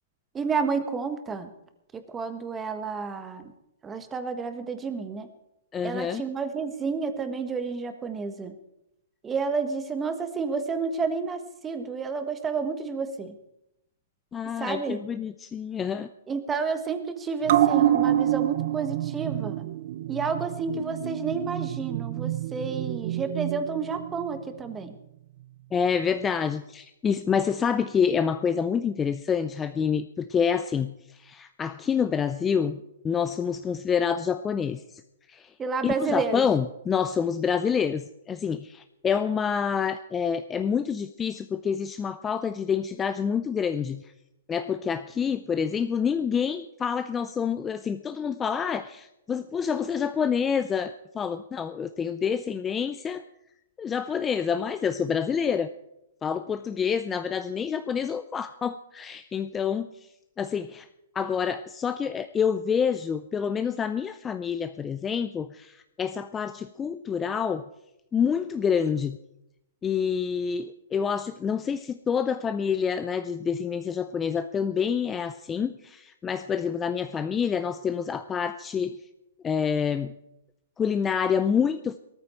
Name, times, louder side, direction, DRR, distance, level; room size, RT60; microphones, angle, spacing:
voice 1, 0.3-1.5 1.9-3.5 3.8-5.3 5.8-8.5 9.2-13.3 14.6-15.0 16.3-19.7 20.1-25.0 35.6-36.5, right 5 dB, 15° right, 8 dB, 1.4 m, -30 dB
voice 2, 5.7-6.2 14.3-16.1 25.7-34.8 35.3-35.5 35.8-44.1 44.5-53.2 53.8-55.7 56.2-59.9 60.4-60.9 61.1-67.6 68.1-69.2 69.8-79.0 79.4-80.1 80.8-82.0, left 7 dB, 15° left, 11 dB, 0.5 m, -27 dB
sound 1, 17.4-24.4 24.7-24.8, right 12 dB, 50° right, 0.6 m, -27 dB
18.5 x 13.5 x 4.4 m, 0.86 s
hypercardioid pair, 150°, 0 cm